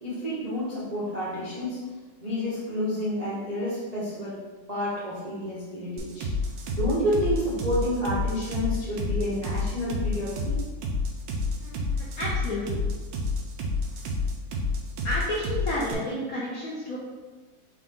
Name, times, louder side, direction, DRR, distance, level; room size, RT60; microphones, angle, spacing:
voice 1, 0.0-1.8 2.2-4.4 4.7-6.3 6.7-10.6, equal, 50° right, -10 dB, 0.4 m, -29 dB
sound 1, 6.0-15.9, left 2 dB, 70° right, 1.2 m, -29 dB
voice 2, 11.6-12.8 15.0-17.0, left 1 dB, 70° left, -5 dB, 0.8 m, -31 dB
4.7 x 2.3 x 3.6 m, 1.3 s
omnidirectional pair, 2.1 m